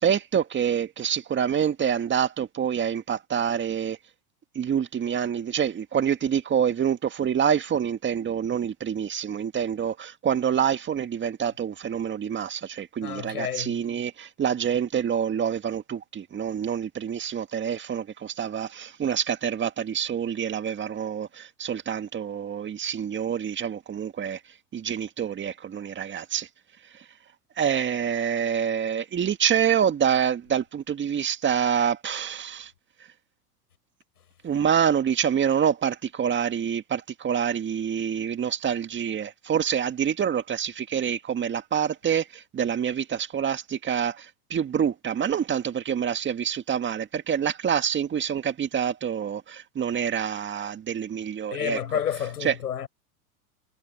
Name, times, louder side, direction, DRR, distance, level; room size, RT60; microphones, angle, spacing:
voice 1, 0.0-4.0 4.6-24.4 24.7-26.5 27.6-32.7 34.4-51.8 52.4-52.5, right 8 dB, 25° right, 2.1 m, -26 dB
voice 2, 13.0-13.8 51.5-52.9, left 9 dB, 90° left, 5.9 m, -30 dB
hypercardioid pair, 105°, 45 cm